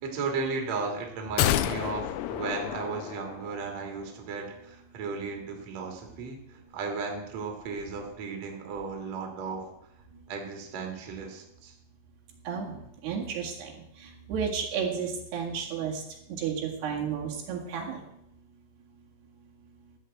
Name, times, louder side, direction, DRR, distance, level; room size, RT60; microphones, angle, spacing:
voice 1, 0.0-9.6 10.3-11.7, right 4 dB, 50° right, 2 dB, 2.8 m, -35 dB
sound 1, 1.4-3.7 4.0-4.1, left 12 dB, 85° left, 2.6 m, -29 dB
voice 2, 13.0-13.7 14.3-16.0 16.3-18.0, right 7 dB, 80° right, -1 dB, 4.0 m, -32 dB
13.5 x 5.4 x 7.9 m, 0.80 s
omnidirectional pair, 4.6 m